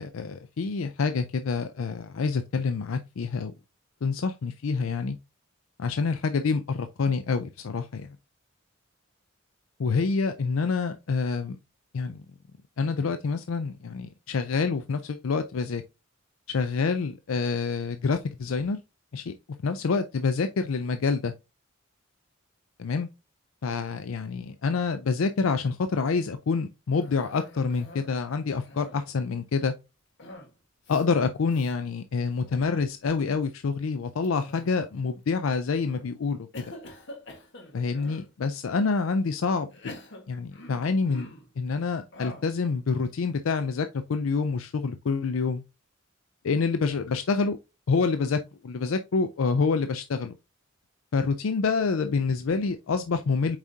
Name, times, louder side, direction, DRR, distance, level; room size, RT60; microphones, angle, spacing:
voice 1, 0.0-3.5 4.0-5.2 5.8-8.1 9.8-11.6 11.9-12.2 12.8-15.8 16.5-18.8 19.1-19.3 19.6-21.3 22.8-23.1 23.6-29.7 30.9-36.6 37.7-40.0 40.3-41.3 41.6-45.6 46.4-47.6 47.9-50.3 51.1-53.6, left 4 dB, 80° left, 0.4 m, -27 dB
Cough, 27.0-28.2 28.5-29.2 30.2-30.6 30.8-31.1 31.5-31.7 32.3-32.7 34.2-35.0 35.6-36.0 36.5-38.3 39.0-39.1 39.7-41.5 42.1-42.6, left 1 dB, 60° left, 1.7 m, -46 dB
7.1 x 4.9 x 2.8 m
head